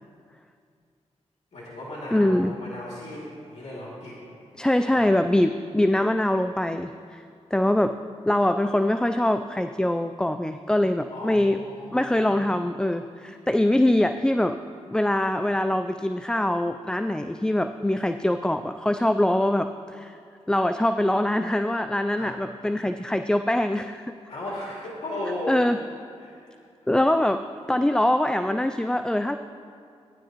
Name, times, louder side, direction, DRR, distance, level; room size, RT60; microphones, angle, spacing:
voice 1, 1.5-4.2 4.7-5.1 11.1-12.5 22.2-22.3 24.3-25.7 26.2-26.6, left 1 dB, 70° left, -6 dB, 2.4 m, -36 dB
voice 2, 2.1-2.5 4.6-7.2 7.5-8.0 8.3-11.6 11.9-14.6 14.9-20.2 20.5-24.1 25.5-25.8 26.9-29.4, left 1 dB, 5° left, 8 dB, 0.3 m, -23 dB
17.5 x 10.5 x 3.0 m, 2.3 s
cardioid pair, 65°, 12 cm